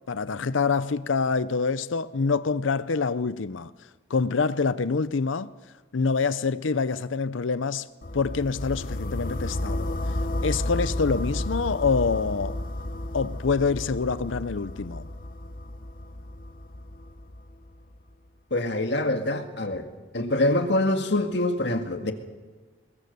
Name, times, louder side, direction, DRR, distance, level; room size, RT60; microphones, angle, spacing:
voice 1, 0.1-3.7 4.1-5.5 5.9-7.9 8.1-10.0 10.4-12.6 13.1-15.1, left 4 dB, 80° left, 0.6 m, -26 dB
sound 1, 8.0-17.9, left 1 dB, 45° left, 1.1 m, -32 dB
voice 2, 18.5-19.9 20.1-22.1, left 1 dB, 60° left, 1.9 m, -25 dB
22.5 x 21.0 x 6.8 m
head